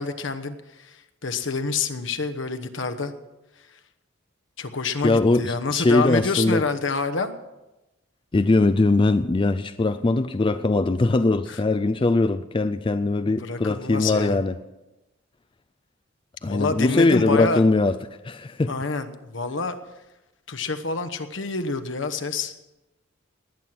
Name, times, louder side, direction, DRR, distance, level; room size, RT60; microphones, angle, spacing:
voice 1, 0.0-3.1 4.6-7.3 11.5-11.6 13.3-14.4 16.4-17.6 18.7-19.8 20.5-22.5, left 4 dB, 65° left, 1.1 m, -27 dB
voice 2, 5.0-6.6 8.3-14.5 16.4-18.0 18.2-18.7, left 2 dB, 25° left, 0.4 m, -21 dB
19.5 x 9.2 x 6.1 m
head